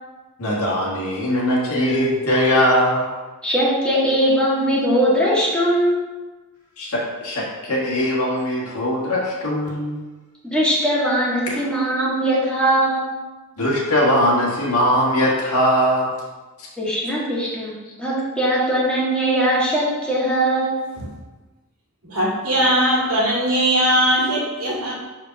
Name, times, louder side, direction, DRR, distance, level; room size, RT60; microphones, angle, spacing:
voice 1, 0.4-3.1 6.8-10.0 11.5-11.6 13.6-16.1, equal, 85° left, -5 dB, 1.5 m, -20 dB
voice 2, 3.4-6.1 10.4-13.1 16.8-17.7 18.0-20.7, right 1 dB, 5° left, -7 dB, 1.9 m, -20 dB
voice 3, 22.0-24.9, right 1 dB, 75° right, -5 dB, 2.1 m, -19 dB
5.0 x 4.5 x 5.7 m, 1.2 s
head